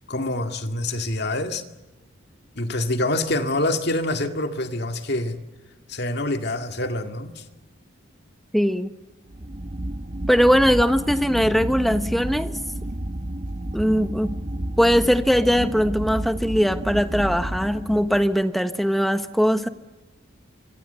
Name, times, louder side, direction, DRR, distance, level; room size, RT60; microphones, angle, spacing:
voice 1, 0.1-1.6 2.6-5.4 5.9-7.4, left 1 dB, 55° left, 6 dB, 2.1 m, -26 dB
voice 2, 8.5-8.9 10.3-12.5 13.7-14.4 14.8-19.7, equal, ahead, 9 dB, 1.1 m, -20 dB
sound 1, 9.3-18.4, right 1 dB, 35° right, 1.0 m, -31 dB
26.0 x 24.0 x 6.9 m, 1.1 s
head